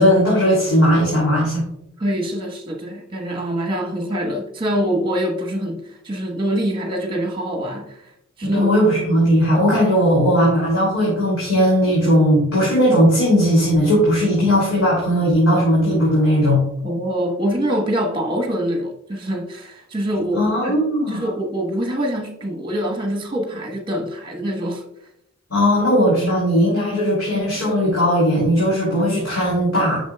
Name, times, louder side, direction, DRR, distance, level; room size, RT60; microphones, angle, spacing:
voice 1, 0.0-1.6 8.4-16.6 20.3-21.3 25.5-30.0, equal, 80° left, 2.8 m, -17 dB
voice 2, 2.0-8.0 8.4-8.7 16.8-20.8 21.1-24.8, equal, 25° right, 1.2 m, -24 dB
8.6 x 6.2 x 2.3 m
head